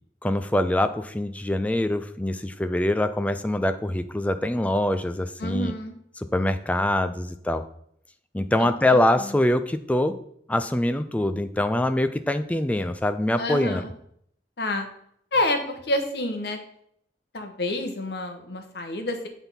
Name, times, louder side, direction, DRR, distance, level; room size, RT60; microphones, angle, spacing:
voice 1, 0.2-5.7 6.2-7.6 8.3-10.2 10.5-13.8, left 1 dB, 10° left, 10 dB, 0.3 m, -24 dB
voice 2, 5.4-5.9 8.6-9.4 13.4-13.9 14.6-14.9 15.3-16.6 17.3-19.3, left 1 dB, 65° left, 5 dB, 1.0 m, -28 dB
8.1 x 3.5 x 5.6 m, 0.70 s
head